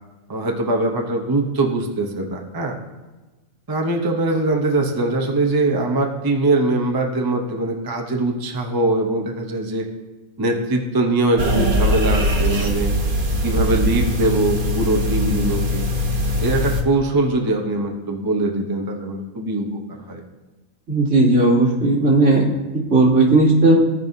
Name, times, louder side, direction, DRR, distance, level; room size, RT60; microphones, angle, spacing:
voice 1, 0.3-2.8 3.7-9.9 10.4-12.9 13.4-15.9 16.4-19.8 20.1-20.2, right 2 dB, 20° right, 2 dB, 0.7 m, -22 dB
sound 1, 11.4-16.8, equal, 40° right, 1.0 m, -21 dB
voice 2, 20.9-22.4 22.9-23.8, right 2 dB, 75° right, -8 dB, 2.9 m, -15 dB
16.0 x 5.4 x 2.7 m, 1.2 s
omnidirectional pair, 1.5 m